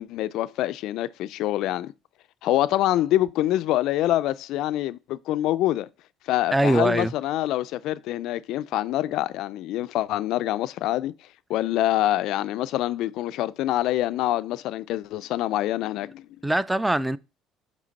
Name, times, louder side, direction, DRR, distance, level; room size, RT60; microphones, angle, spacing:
voice 1, 0.0-1.9 2.4-5.9 6.3-11.1 11.5-16.2, left 14 dB, 70° left, 0.3 m, -25 dB
voice 2, 6.5-7.1 16.4-17.2, right 1 dB, 10° right, 0.4 m, -22 dB
7.5 x 3.1 x 4.0 m
supercardioid pair, 85°, 0 cm